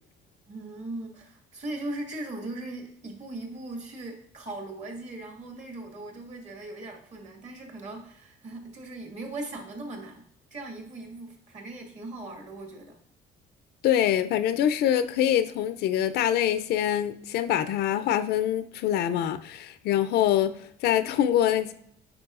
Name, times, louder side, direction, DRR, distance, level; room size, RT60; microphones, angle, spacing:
voice 1, 0.5-10.2 10.5-13.0, right 2 dB, 40° right, 1.7 m, -39 dB
voice 2, 13.8-21.7, left 11 dB, 70° left, 0.5 m, -25 dB
8.6 x 4.8 x 2.5 m
cardioid pair, 110°, 17 cm